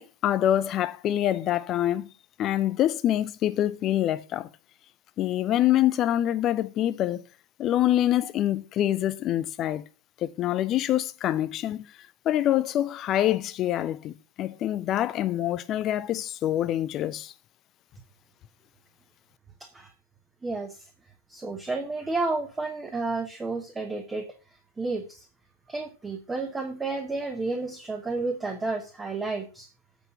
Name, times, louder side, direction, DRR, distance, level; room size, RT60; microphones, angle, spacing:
voice 1, 0.0-2.1 2.4-4.5 5.2-7.2 7.6-9.8 10.2-11.9 12.2-17.3, left 12 dB, 35° left, 0.5 m, -25 dB
voice 2, 20.4-20.9 21.3-25.2 25.7-29.7, right 3 dB, 10° right, 1.1 m, -31 dB
8.2 x 5.4 x 5.7 m
figure-of-eight pair, 90°, 0 cm